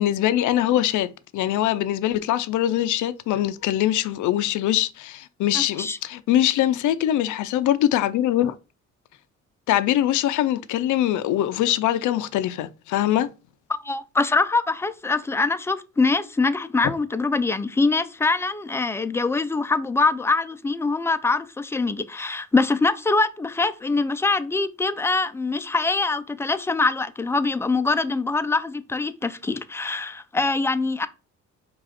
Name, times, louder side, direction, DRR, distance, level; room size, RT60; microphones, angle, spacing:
voice 1, 0.0-8.5 9.7-13.3, left 12 dB, 75° left, 0.5 m, -23 dB
voice 2, 5.5-6.0 13.7-31.1, left 3 dB, 10° left, 0.3 m, -23 dB
4.9 x 2.4 x 4.2 m
cardioid pair, 90°, 30 cm